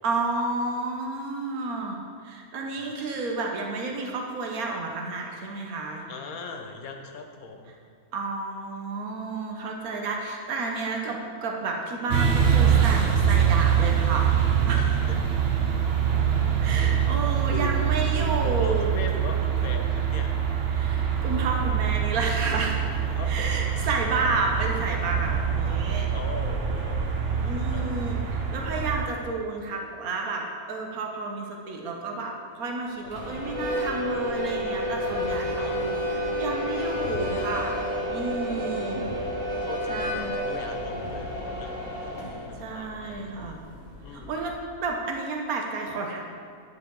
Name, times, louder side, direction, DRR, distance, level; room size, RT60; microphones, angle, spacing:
voice 1, 0.0-6.1 8.1-14.9 16.6-18.9 20.7-22.9 23.3-26.1 27.3-37.8 38.1-39.1 39.9-40.4 42.6-43.6 44.1-46.3, right 3 dB, 80° right, 1 dB, 1.4 m, -31 dB
voice 2, 6.1-7.7 14.7-15.6 17.5-17.7 18.2-20.3 23.1-23.5 26.1-27.2 27.7-27.9 33.0-33.1 35.6-35.9 38.5-39.0 39.6-40.2 40.5-41.8 42.4-43.4 44.0-44.3, left 3 dB, 75° left, 4 dB, 1.3 m, -39 dB
sound 1, 12.1-29.0, right 8 dB, 50° right, 1.0 m, -24 dB
sound 2, 33.0-44.9, left 1 dB, 35° left, 1.3 m, -36 dB
Harmonica, 33.4-40.8, equal, 25° right, 2.1 m, -31 dB
9.8 x 7.6 x 3.8 m, 2.2 s
omnidirectional pair, 1.5 m